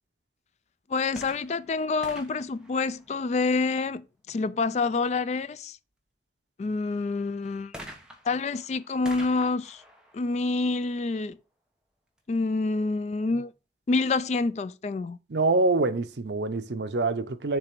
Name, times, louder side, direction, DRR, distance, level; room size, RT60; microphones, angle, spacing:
voice 1, 0.9-5.8 6.6-7.7 8.2-9.8 10.1-11.4 12.3-13.5 13.9-15.2, left 3 dB, 40° left, 0.3 m, -27 dB
sound 1, 1.1-3.7 7.7-11.4 12.2-12.3, equal, 5° right, 1.0 m, -47 dB
voice 2, 15.3-17.6, right 3 dB, 75° right, 0.7 m, -25 dB
6.8 x 3.3 x 5.9 m
head